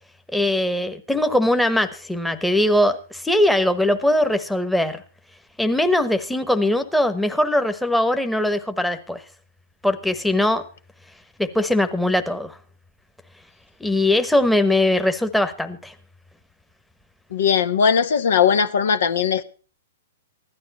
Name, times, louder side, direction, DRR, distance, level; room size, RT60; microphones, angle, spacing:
voice 1, 0.3-5.0 5.6-9.2 9.8-10.6 11.4-12.6 13.8-15.9, left 1 dB, ahead, 1.2 m, -21 dB
voice 2, 17.3-19.4, left 7 dB, 65° left, 1.2 m, -19 dB
16.0 x 12.0 x 4.2 m
hypercardioid pair, 115°, 0 cm